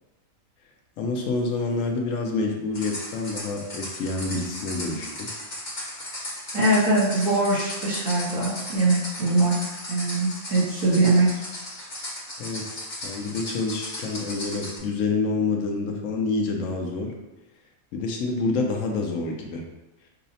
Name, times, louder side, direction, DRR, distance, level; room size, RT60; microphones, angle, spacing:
voice 1, 1.0-5.3 12.4-17.1 17.9-19.6, left 3 dB, 75° left, 2 dB, 0.9 m, -27 dB
sound 1, 2.7-14.8, left 1 dB, 35° left, 1.0 m, -36 dB
voice 2, 6.5-9.5 9.9-11.3, right 2 dB, 75° right, -10 dB, 1.4 m, -22 dB
5.5 x 2.0 x 2.7 m, 1.1 s
omnidirectional pair, 1.5 m